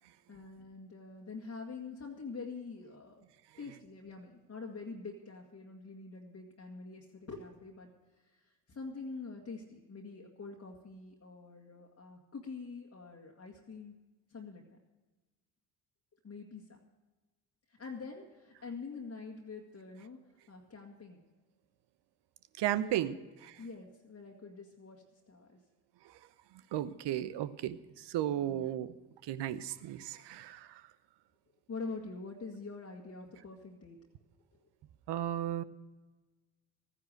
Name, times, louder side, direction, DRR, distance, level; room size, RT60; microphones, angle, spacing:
voice 1, 0.3-3.2 3.6-7.9 8.2-13.9 14.3-14.8 16.2-16.8 17.7-21.2 22.8-23.2 23.6-25.6 28.3-28.7 31.7-34.0, left 4 dB, 30° left, 0 dB, 1.9 m, -45 dB
voice 2, 22.6-23.2 23.4-23.6 26.0-26.1 26.7-29.0 29.2-30.8 35.1-35.6, right 12 dB, 55° right, 15 dB, 0.9 m, -34 dB
14.5 x 9.8 x 6.5 m, 1.2 s
hypercardioid pair, 55°, 49 cm